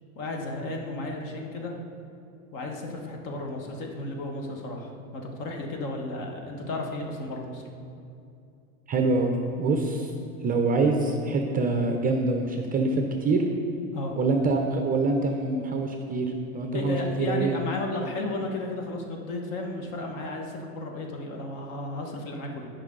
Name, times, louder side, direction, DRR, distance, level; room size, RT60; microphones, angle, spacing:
voice 1, 0.2-1.8 2.5-7.6 13.9-14.1 16.7-22.6, left 2 dB, 45° left, 2 dB, 1.5 m, -33 dB
voice 2, 8.9-10.1 10.4-13.5 14.2-17.6, right 3 dB, 20° right, 3 dB, 0.6 m, -25 dB
13.5 x 5.4 x 3.8 m, 2.5 s
supercardioid pair, 130°, 42 cm